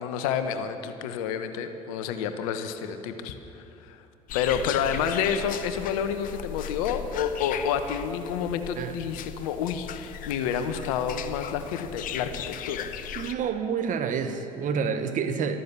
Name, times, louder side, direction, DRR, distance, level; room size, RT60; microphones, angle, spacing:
voice 1, 0.0-3.3 3.9-4.0 4.3-12.9, left 7 dB, 70° left, 9 dB, 1.1 m, -29 dB
sound 1, 4.3-13.3, left 10 dB, 45° left, 0.9 m, -37 dB
voice 2, 13.1-15.6, right 6 dB, 45° right, 8 dB, 1.3 m, -28 dB
13.0 x 13.0 x 7.0 m, 2.7 s
hypercardioid pair, 70°, 19 cm